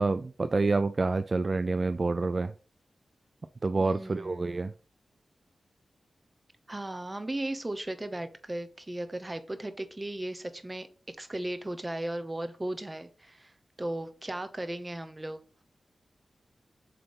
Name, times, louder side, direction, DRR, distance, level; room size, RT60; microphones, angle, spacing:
voice 1, 0.0-2.5 3.6-4.7, right 3 dB, 45° right, 11 dB, 0.4 m, -27 dB
voice 2, 3.8-4.4 6.7-15.6, right 1 dB, 20° right, 10 dB, 1.0 m, -36 dB
7.8 x 3.4 x 3.7 m, 0.37 s
cardioid pair, 65°, 0 cm